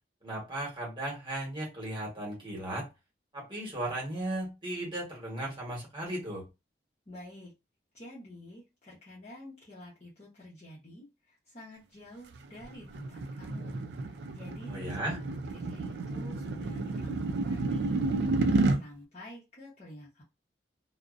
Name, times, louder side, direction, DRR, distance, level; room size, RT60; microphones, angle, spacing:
voice 1, 0.2-2.9 3.3-6.4 14.7-15.2, right 1 dB, 25° right, 1.1 m, -36 dB
voice 2, 7.1-7.5 7.9-13.8 14.0-18.0 18.3-20.2, equal, 35° left, 0.8 m, -49 dB
sound 1, 12.3-18.8, right 2 dB, 70° right, 0.4 m, -31 dB
2.5 x 2.0 x 2.4 m
head